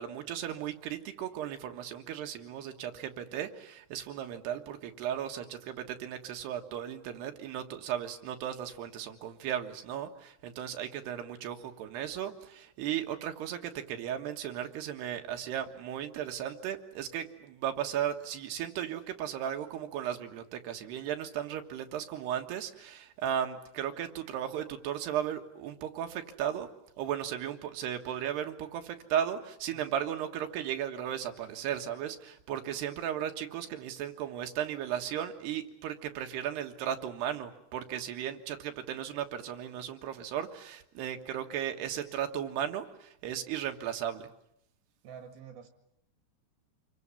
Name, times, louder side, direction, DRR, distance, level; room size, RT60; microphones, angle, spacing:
voice 1, 0.0-26.7 27.0-44.3, right 10 dB, 90° right, 6 dB, 3.7 m, -36 dB
voice 2, 45.0-45.7, right 7 dB, 70° right, 7 dB, 3.4 m, -48 dB
27.5 x 23.0 x 8.5 m, 0.77 s
omnidirectional pair, 4.6 m